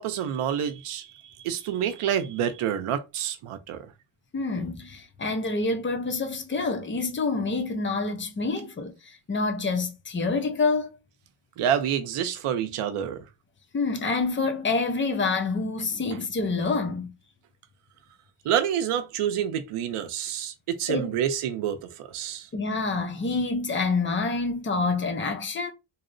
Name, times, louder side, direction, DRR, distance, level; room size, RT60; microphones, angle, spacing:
voice 1, 0.0-3.9 11.6-13.2 18.4-22.5, right 9 dB, 85° right, 0.6 m, -28 dB
voice 2, 4.3-11.0 13.7-17.1 20.9-21.1 22.5-25.7, left 3 dB, 25° left, 0.5 m, -27 dB
2.7 x 2.0 x 2.5 m
wide cardioid pair, 110°, 50 cm